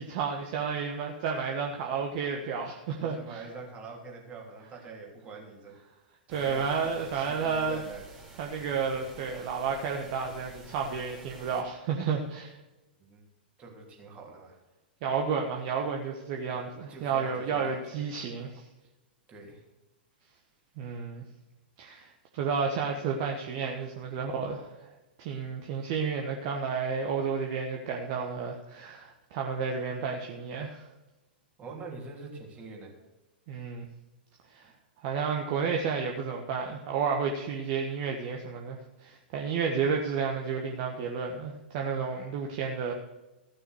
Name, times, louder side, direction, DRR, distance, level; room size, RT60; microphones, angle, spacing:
voice 1, 0.0-3.4 6.3-7.8 8.4-12.5 15.0-18.6 20.8-21.2 21.8-24.7 25.2-30.8 33.5-33.9 34.5-34.7 35.0-42.9, right 5 dB, 40° right, 1 dB, 1.3 m, -31 dB
voice 2, 3.0-5.8 6.3-8.1 13.0-13.2 13.6-14.6 16.5-18.1 19.3-19.6 31.6-32.9, right 4 dB, 20° right, 0 dB, 3.2 m, -45 dB
sound 1, 6.3-11.6, right 3 dB, 5° right, 3.3 m, -50 dB
15.0 x 6.5 x 6.3 m, 1.1 s
figure-of-eight pair, 100°, 6 cm